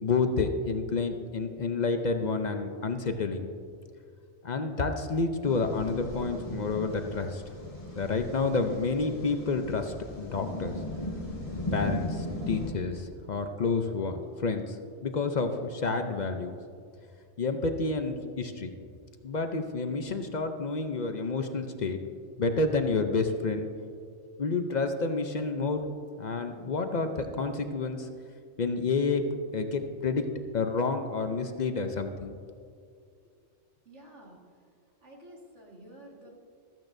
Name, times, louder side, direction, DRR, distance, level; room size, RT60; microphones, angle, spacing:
voice 1, 0.0-3.5 4.4-7.4 8.0-10.7 11.7-16.6 17.4-18.7 19.2-22.0 22.4-23.7 24.4-25.8 26.2-28.1 28.6-29.2 29.5-30.2 30.5-32.4, left 4 dB, 45° left, 6 dB, 0.6 m, -29 dB
sound 1, 5.5-12.7, left 1 dB, 30° left, 1.4 m, -37 dB
voice 2, 33.9-34.4 35.0-36.3, right 1 dB, 75° right, -2 dB, 2.3 m, -50 dB
15.0 x 14.0 x 2.6 m, 2.3 s
omnidirectional pair, 1.2 m